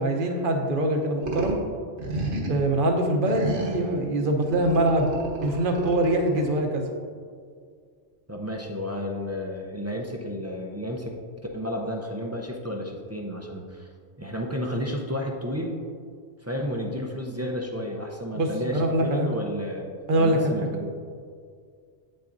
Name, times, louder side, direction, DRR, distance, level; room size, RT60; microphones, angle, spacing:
voice 1, 0.0-1.6 2.5-5.1 5.4-6.9 18.3-19.3 20.1-20.5, right 1 dB, 50° right, 3 dB, 0.9 m, -23 dB
sound 1, 1.2-1.6 2.0-2.7 3.3-3.9 4.4-6.5, right 1 dB, 65° right, 1.6 m, -32 dB
voice 2, 8.3-11.1 11.5-13.9 14.2-15.8 16.4-21.0, equal, 20° right, 0 dB, 0.4 m, -32 dB
8.8 x 8.2 x 2.6 m, 2.1 s
omnidirectional pair, 1.3 m